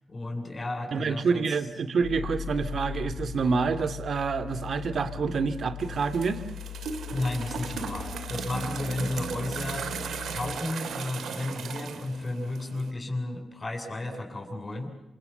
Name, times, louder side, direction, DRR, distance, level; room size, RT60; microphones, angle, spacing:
voice 1, 0.1-1.5 7.1-9.9 10.3-14.9, left 2 dB, 30° left, 5 dB, 7.9 m, -33 dB
voice 2, 0.9-6.4, right 5 dB, 65° right, 12 dB, 2.5 m, -27 dB
sound 1, 2.0-10.6, left 9 dB, 85° left, 2.8 m, -39 dB
sound 2, 5.8-12.9, right 6 dB, 85° right, 2.2 m, -37 dB
28.0 x 26.0 x 7.1 m, 0.90 s
cardioid pair, 85°, 0 cm